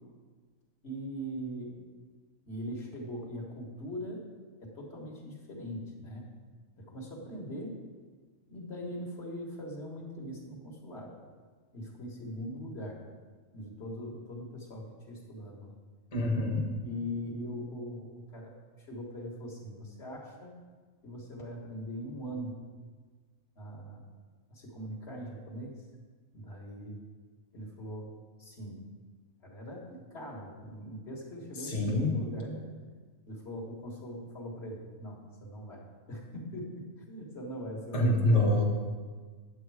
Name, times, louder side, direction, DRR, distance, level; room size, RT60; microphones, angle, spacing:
voice 1, 0.8-1.8 2.5-4.2 4.6-6.4 6.8-7.8 8.5-11.1 11.7-13.0 13.5-15.7 16.8-20.5 21.0-22.7 23.6-24.1 24.5-25.8 26.3-27.0 27.5-28.9 29.4-32.7 33.3-38.6, equal, 50° left, -2 dB, 1.8 m, -41 dB
voice 2, 16.1-16.7 31.6-32.3 37.9-38.6, left 1 dB, 30° left, -1 dB, 1.1 m, -26 dB
10.0 x 7.5 x 4.8 m, 1.5 s
omnidirectional pair, 1.4 m